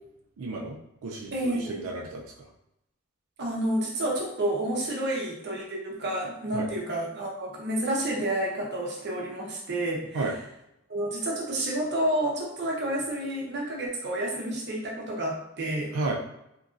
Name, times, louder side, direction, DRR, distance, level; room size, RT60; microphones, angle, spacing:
voice 1, 0.4-2.2 6.5-6.7 10.1-10.3 15.9-16.1, right 3 dB, 85° right, -1 dB, 0.4 m, -32 dB
voice 2, 1.3-1.9 3.4-10.2 10.9-15.9, right 1 dB, 55° right, -2 dB, 0.8 m, -30 dB
2.9 x 2.6 x 2.4 m, 0.83 s
head